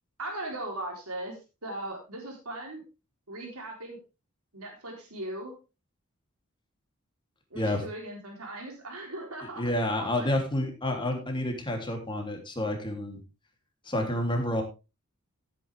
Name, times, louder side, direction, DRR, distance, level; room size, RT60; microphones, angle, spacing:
voice 1, 0.2-2.8 3.3-4.0 4.5-5.6 7.5-9.7 10.0-10.3 10.6-10.7, right 1 dB, 85° right, 1 dB, 4.0 m, -38 dB
voice 2, 9.6-13.2 13.8-14.6, left 1 dB, 20° left, 3 dB, 3.2 m, -29 dB
15.5 x 9.1 x 3.6 m, 0.28 s
head